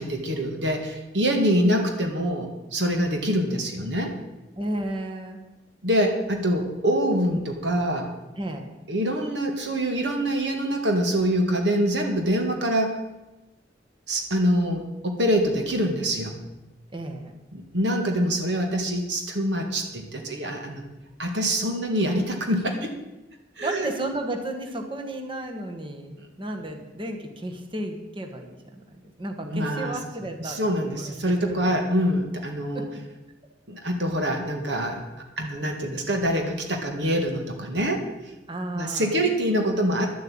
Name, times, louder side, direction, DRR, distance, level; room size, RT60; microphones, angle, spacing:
voice 1, 0.0-4.1 5.8-8.1 8.9-13.0 14.1-16.4 17.5-20.8 21.2-23.0 23.6-23.9 29.4-29.9 30.4-32.9 33.7-35.0 35.4-38.0 38.8-40.1, equal, 70° right, 3 dB, 2.0 m, -25 dB
voice 2, 4.6-5.4 8.4-8.7 16.9-17.3 23.6-28.6 28.9-30.6 30.9-31.8 32.7-32.9 38.5-39.2, right 1 dB, 30° right, 4 dB, 1.5 m, -33 dB
11.5 x 7.9 x 8.8 m, 1.0 s
head